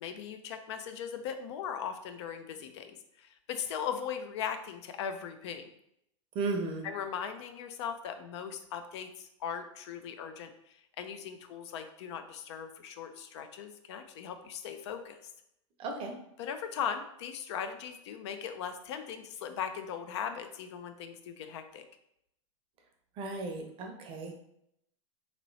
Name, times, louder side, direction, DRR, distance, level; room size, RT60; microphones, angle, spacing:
voice 1, 0.0-5.6 6.8-15.3 16.4-21.8, left 7 dB, 60° left, 8 dB, 0.4 m, -39 dB
voice 2, 6.3-6.9 15.8-16.2 23.2-24.4, right 3 dB, 35° right, 3 dB, 0.6 m, -35 dB
3.0 x 2.9 x 2.7 m, 0.76 s
hypercardioid pair, 105°, 17 cm